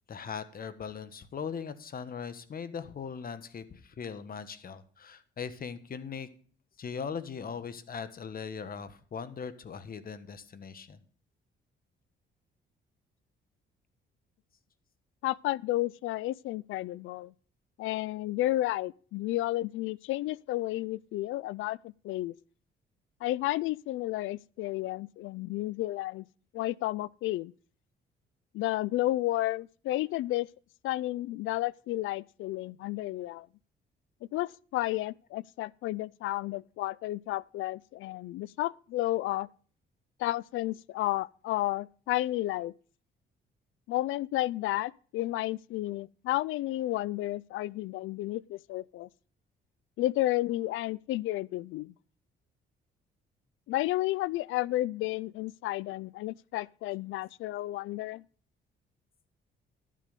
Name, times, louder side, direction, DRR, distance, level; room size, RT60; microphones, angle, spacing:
voice 1, 0.1-6.3 6.8-11.0 38.0-38.1, left 6 dB, 45° left, 1.3 m, -40 dB
voice 2, 15.2-17.3 17.8-22.3 23.2-26.3 26.5-27.5 28.5-30.5 30.8-33.5 34.3-39.5 40.2-42.7 43.9-49.1 50.0-51.9 53.7-58.2, left 16 dB, 85° left, 0.4 m, -32 dB
12.0 x 7.5 x 5.1 m
cardioid pair, 90°, 20 cm